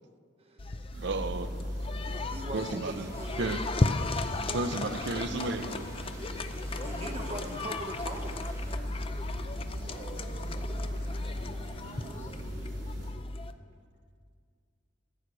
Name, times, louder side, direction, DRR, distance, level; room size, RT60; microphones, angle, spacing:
voice 1, 0.4-0.8 2.1-3.7 6.8-8.5, right 2 dB, 35° right, 4 dB, 0.9 m, -41 dB
sound 1, 0.6-13.5, left 2 dB, 30° left, 0.5 m, -36 dB
sound 2, 0.9-13.1, equal, 85° right, 3.5 m, -39 dB
voice 2, 1.0-1.5 2.5-3.1 3.4-3.6 4.5-5.9, right 3 dB, 70° right, 10 dB, 0.7 m, -33 dB
sound 3, 2.9-8.8, right 1 dB, 15° right, 2.0 m, -51 dB
voice 3, 6.7-7.6 9.9-12.7, left 1 dB, 45° left, -3 dB, 2.9 m, -48 dB
14.0 x 8.3 x 6.1 m, 2.1 s
head